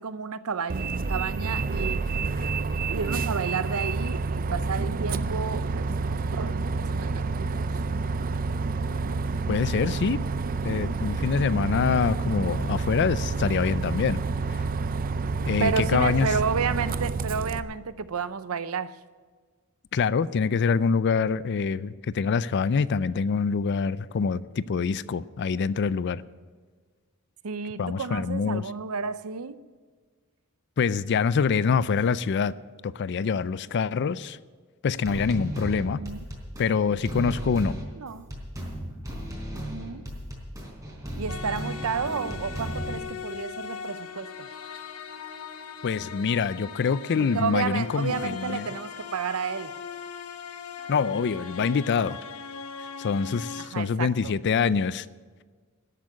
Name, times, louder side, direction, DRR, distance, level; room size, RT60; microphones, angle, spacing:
voice 1, 0.0-2.1 2.9-5.8 6.0-7.6 15.6-19.0 27.4-29.7 35.7-36.2 38.0-38.3 39.5-40.1 41.2-44.5 47.2-49.8 53.6-54.3, right 5 dB, 80° right, 0.6 m, -31 dB
Bus, 0.7-17.6, right 4 dB, 40° right, 0.5 m, -29 dB
voice 2, 9.5-10.2 10.6-14.2 15.4-16.3 19.9-26.2 27.8-28.6 30.8-32.5 32.8-34.4 34.8-36.0 36.6-37.8 45.8-48.7 50.9-52.2 53.0-55.1, left 5 dB, 55° left, 0.4 m, -25 dB
sound 1, 35.0-43.0, equal, 15° right, 3.8 m, -35 dB
sound 2, 41.3-53.7, left 6 dB, 90° left, 1.0 m, -39 dB
12.5 x 8.4 x 9.8 m
head